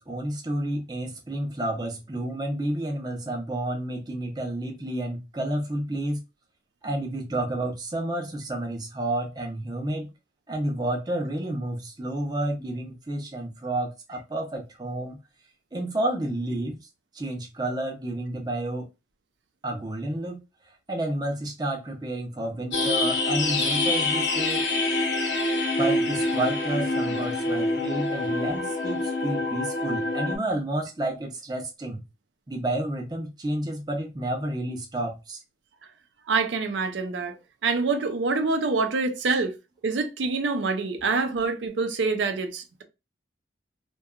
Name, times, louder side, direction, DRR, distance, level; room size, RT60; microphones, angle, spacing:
voice 1, 0.0-6.2 6.8-10.1 10.5-15.2 15.7-16.8 17.1-18.9 19.6-20.4 20.9-24.6 25.8-32.0 32.5-35.4 39.3-39.4, right 1 dB, 20° right, 0.5 m, -30 dB
sound 1, 22.7-30.4, left 2 dB, 85° left, 0.8 m, -26 dB
voice 2, 36.3-37.3 37.6-39.5 39.8-42.8, right 4 dB, 85° right, 0.5 m, -26 dB
2.8 x 2.2 x 2.3 m
head